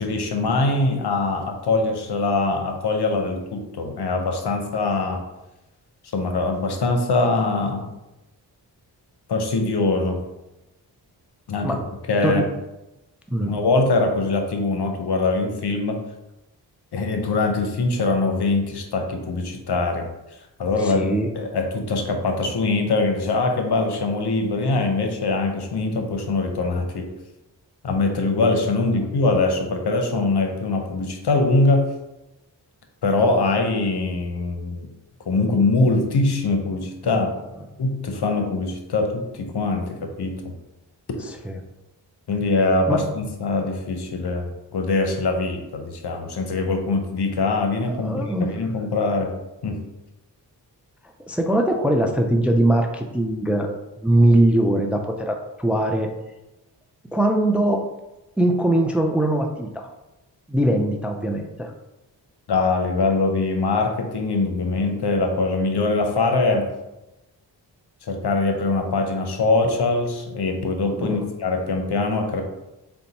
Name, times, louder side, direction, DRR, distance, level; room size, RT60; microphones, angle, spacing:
voice 1, 0.0-5.2 6.1-7.9 9.3-10.2 11.5-11.7 12.1-12.4 13.4-16.0 16.9-20.1 20.6-27.1 27.8-31.9 33.0-34.9 35.3-37.3 37.8-40.5 42.3-49.3 49.6-49.8 62.5-66.7 68.0-72.4, left 3 dB, 60° left, 4 dB, 0.8 m, -22 dB
voice 2, 20.8-21.3 37.1-37.3 41.4-41.6 42.9-43.0 47.8-48.5 51.3-53.7 54.0-56.1 57.1-57.8 58.4-59.9 60.5-61.7 71.0-71.3, right 1 dB, 5° right, 4 dB, 0.4 m, -21 dB
3.9 x 2.2 x 4.0 m, 0.98 s
cardioid pair, 40°, 45 cm